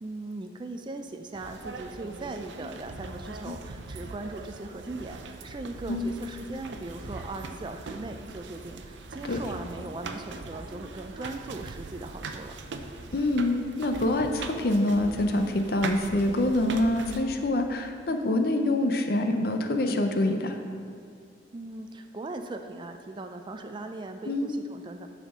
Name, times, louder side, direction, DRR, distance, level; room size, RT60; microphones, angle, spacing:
voice 1, 0.0-12.5 21.5-25.1, right 2 dB, 25° right, 6 dB, 0.3 m, -39 dB
sound 1, 1.3-17.2, right 3 dB, 85° right, 0.6 m, -41 dB
voice 2, 13.1-20.6 24.3-24.5, left 1 dB, 55° left, 5 dB, 0.6 m, -26 dB
9.9 x 4.2 x 6.1 m, 2.2 s
head